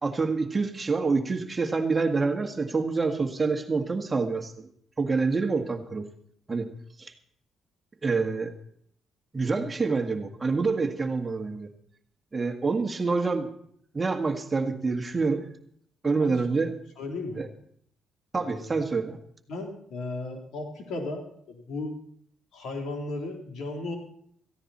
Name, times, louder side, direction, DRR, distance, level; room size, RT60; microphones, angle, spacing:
voice 1, 0.0-4.7 5.0-6.1 6.5-6.7 7.0-7.1 8.0-8.5 9.3-11.7 12.3-13.5 13.9-15.5 16.0-16.7 17.4-17.5 18.3-19.2, right 4 dB, 25° right, 5 dB, 1.7 m, -27 dB
voice 2, 17.0-17.4 18.4-18.7 19.5-22.0 22.5-24.0, left 2 dB, 75° left, 2 dB, 3.6 m, -35 dB
17.0 x 15.0 x 4.3 m, 0.64 s
cardioid pair, 90°, 0 cm